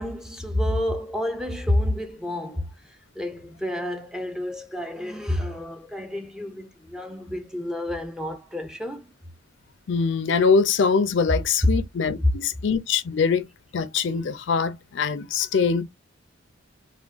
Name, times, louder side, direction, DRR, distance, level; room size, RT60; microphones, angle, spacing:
voice 1, 0.0-9.1 12.2-12.3, left 1 dB, 5° right, 0.4 m, -29 dB
voice 2, 9.9-13.4 13.7-15.8, left 5 dB, 60° left, 0.4 m, -23 dB
3.4 x 2.2 x 2.4 m
head